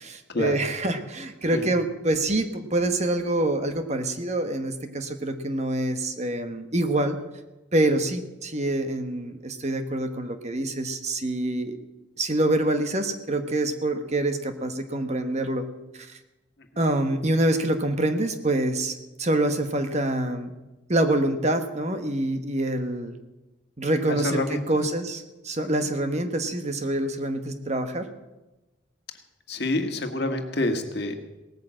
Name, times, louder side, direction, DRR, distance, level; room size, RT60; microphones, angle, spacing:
voice 1, 0.0-7.2 7.7-11.8 12.2-15.6 15.9-16.2 16.8-20.6 20.9-23.1 23.8-28.1, right 1 dB, 35° right, 8 dB, 1.1 m, -26 dB
voice 2, 24.1-24.8 29.5-31.1, left 2 dB, 55° left, 5 dB, 1.7 m, -27 dB
18.0 x 9.4 x 7.6 m, 1.1 s
head